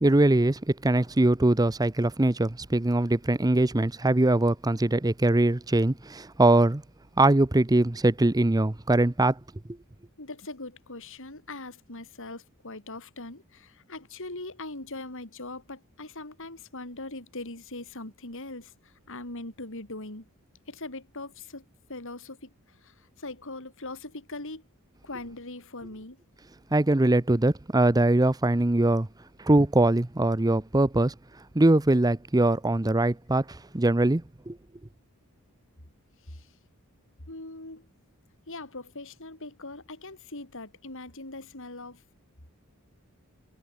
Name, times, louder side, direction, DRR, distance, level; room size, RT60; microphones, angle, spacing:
voice 1, 0.0-6.8 7.2-9.4 26.7-29.1 29.4-31.1 31.5-34.6, right 2 dB, 15° right, 0.7 m, -22 dB
voice 2, 10.2-20.3 20.7-21.6 21.9-24.6 25.0-26.2 36.2-36.5 37.3-37.9 38.5-42.0, left 2 dB, 65° left, 5.3 m, -41 dB
head